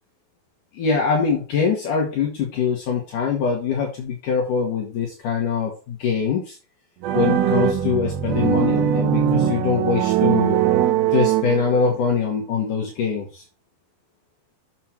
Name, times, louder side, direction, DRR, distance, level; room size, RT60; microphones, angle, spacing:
voice 1, 0.7-6.6 7.1-10.6 11.1-13.4, left 6 dB, 60° left, 0 dB, 2.8 m, -23 dB
sound 1, 7.0-12.0, right 10 dB, 80° right, 2.8 m, -21 dB
7.5 x 6.7 x 4.4 m, 0.31 s
omnidirectional pair, 4.3 m